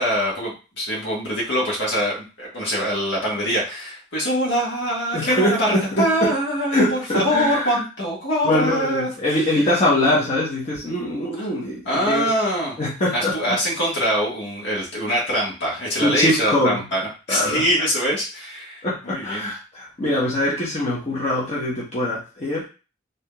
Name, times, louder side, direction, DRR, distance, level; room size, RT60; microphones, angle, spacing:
voice 1, 0.0-9.1 11.4-11.5 11.8-12.8 13.1-19.5, equal, 70° left, -4 dB, 1.5 m, -23 dB
voice 2, 5.1-6.3 6.7-7.8 8.4-11.8 12.1-12.3 12.8-13.6 16.0-16.8 17.3-17.6 18.8-22.7, left 1 dB, 35° left, -6 dB, 0.9 m, -23 dB
3.5 x 2.7 x 2.3 m, 0.33 s
head